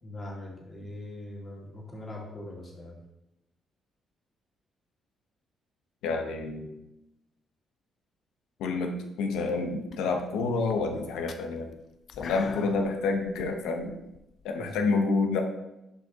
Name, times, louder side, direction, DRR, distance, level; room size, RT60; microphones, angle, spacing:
voice 1, 0.0-3.0 12.4-12.6 14.6-14.9, left 1 dB, 35° left, -3 dB, 2.0 m, -41 dB
voice 2, 6.0-6.8 8.6-11.7 12.2-14.0 14.4-15.4, left 3 dB, 90° left, 4 dB, 0.8 m, -28 dB
sound 1, 9.3-9.6 9.9-14.9, left 6 dB, 60° left, 0.4 m, -45 dB
6.5 x 5.2 x 2.8 m, 0.91 s
cardioid pair, 90°, 0 cm